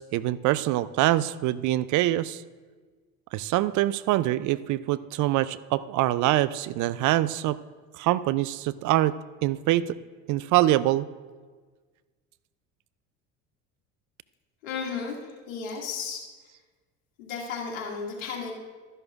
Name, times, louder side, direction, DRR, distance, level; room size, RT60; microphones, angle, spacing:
voice 1, 0.0-2.4 3.3-7.6 7.9-9.2 9.4-9.9 10.3-11.1, right 15 dB, 50° right, 17 dB, 0.4 m, -24 dB
voice 2, 14.6-16.5 17.2-18.5, left 5 dB, 80° left, -2 dB, 2.2 m, -34 dB
12.5 x 11.0 x 2.4 m, 1.4 s
hypercardioid pair, 70°, 39 cm